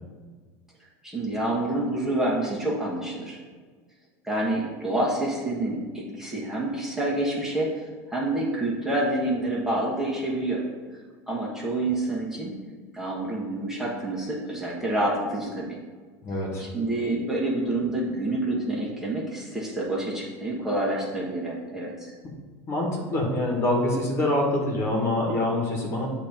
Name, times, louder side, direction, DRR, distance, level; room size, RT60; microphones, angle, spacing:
voice 1, 1.0-3.4 4.2-10.6 11.3-12.5 12.9-15.6 16.6-22.1, right 1 dB, 5° right, -5 dB, 1.3 m, -28 dB
voice 2, 16.2-16.6 22.7-26.1, left 1 dB, 35° left, -1 dB, 1.6 m, -25 dB
8.0 x 2.9 x 5.4 m, 1.5 s
supercardioid pair, 130°, 8 cm